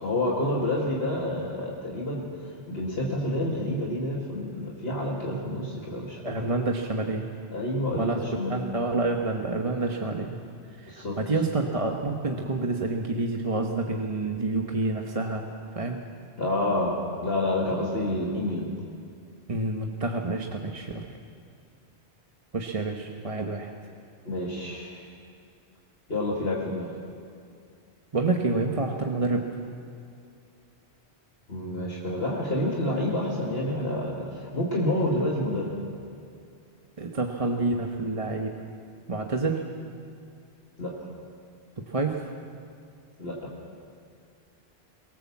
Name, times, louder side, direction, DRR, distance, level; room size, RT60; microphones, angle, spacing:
voice 1, 0.0-6.2 7.5-8.6 10.9-11.2 16.4-17.0 17.2-18.7 24.2-25.0 26.1-26.9 31.5-35.8 40.8-40.9 43.2-43.3, left 1 dB, 65° left, -3 dB, 2.5 m, -28 dB
voice 2, 6.2-7.2 7.9-8.2 8.5-10.3 10.8-15.5 15.7-16.0 19.5-21.1 22.5-23.7 28.1-29.5 37.0-38.6 39.1-39.7 41.9-42.3, right 3 dB, 35° right, 2 dB, 1.2 m, -28 dB
23.0 x 18.5 x 7.3 m, 2.4 s
omnidirectional pair, 1.1 m